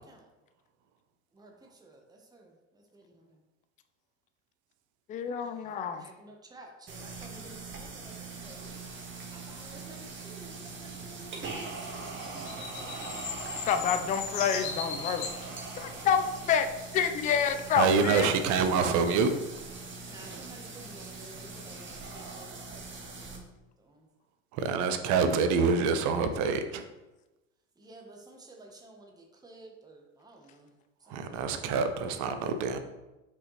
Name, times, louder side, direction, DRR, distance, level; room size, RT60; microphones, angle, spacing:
voice 1, 1.3-3.4 5.3-8.8 9.3-13.3 20.1-23.5 23.8-24.0 27.8-30.7 31.1-31.4, right 2 dB, 10° right, 1 dB, 1.1 m, -53 dB
voice 2, 5.1-6.0 13.7-15.3 15.8-18.3, left 7 dB, 20° left, 9 dB, 0.4 m, -28 dB
sound 1, 6.9-23.4, right 3 dB, 30° right, 1.5 m, -42 dB
sound 2, 12.0-15.4 16.4-16.5, left 5 dB, 60° left, 1.6 m, -37 dB
voice 3, 17.7-19.3 24.5-26.8 31.1-32.8, right 5 dB, 50° right, 9 dB, 0.8 m, -26 dB
5.5 x 5.4 x 3.2 m, 1.0 s
hypercardioid pair, 75°, 39 cm